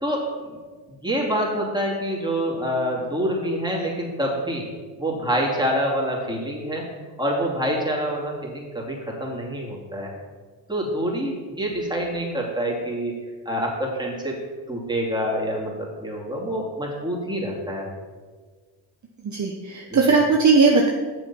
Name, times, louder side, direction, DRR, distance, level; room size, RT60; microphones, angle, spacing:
voice 1, 0.9-4.6 5.0-6.8 7.2-10.1 10.7-13.1 13.4-14.4 14.7-17.9 19.9-20.2, equal, 10° right, -3 dB, 2.8 m, -26 dB
voice 2, 19.2-20.9, right 4 dB, 40° right, 1 dB, 1.0 m, -18 dB
7.0 x 6.7 x 5.8 m, 1.5 s
supercardioid pair, 65°, 45 cm